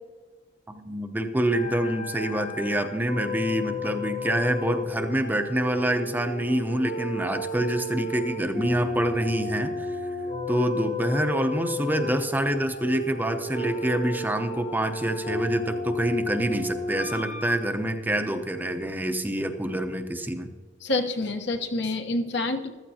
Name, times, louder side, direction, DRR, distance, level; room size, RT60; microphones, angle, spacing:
voice 1, 0.7-10.0 10.5-20.5, right 1 dB, 10° right, 6 dB, 0.7 m, -26 dB
sound 1, 1.5-17.6, left 2 dB, 40° left, 1.0 m, -33 dB
voice 2, 20.8-22.7, left 2 dB, 65° left, 5 dB, 1.1 m, -27 dB
15.0 x 13.0 x 2.8 m, 1.5 s
head